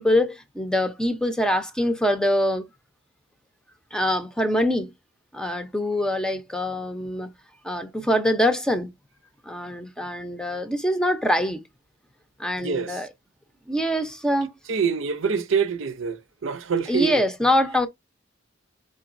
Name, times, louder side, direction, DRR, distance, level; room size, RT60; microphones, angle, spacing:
voice 1, 0.0-2.7 3.9-4.9 5.3-7.3 7.6-8.9 9.4-11.6 12.4-13.1 13.7-14.5 16.9-17.9, left 1 dB, 5° left, 0.6 m, -24 dB
voice 2, 12.6-13.0 14.7-16.2 16.4-17.2, right 6 dB, 85° right, 0.6 m, -25 dB
5.1 x 3.9 x 2.5 m
head